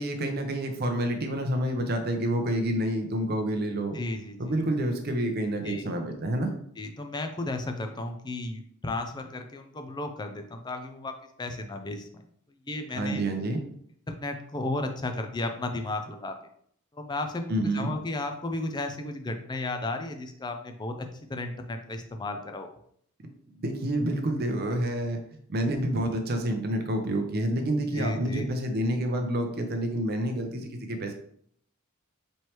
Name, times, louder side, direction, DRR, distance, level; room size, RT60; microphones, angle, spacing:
voice 1, 0.0-4.0 4.4-6.5 12.9-13.6 17.5-17.9 23.5-31.1, right 1 dB, 50° right, 5 dB, 0.6 m, -28 dB
voice 2, 3.9-4.5 5.6-5.9 6.8-12.2 12.7-13.2 14.1-16.4 16.9-22.7 27.9-28.5, left 2 dB, 20° left, 6 dB, 0.4 m, -34 dB
4.4 x 3.2 x 3.0 m, 0.65 s
head